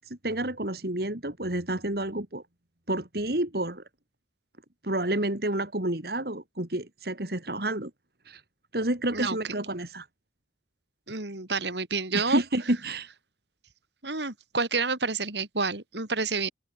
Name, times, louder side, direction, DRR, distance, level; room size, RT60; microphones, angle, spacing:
voice 1, 0.1-2.4 2.9-3.8 4.8-7.9 8.3-8.4 8.7-10.1 12.1-13.1, right 1 dB, 55° right, 2.9 m, -29 dB
voice 2, 9.1-9.7 11.1-12.4 14.0-16.5, right 4 dB, 75° right, 3.7 m, -29 dB
open air
head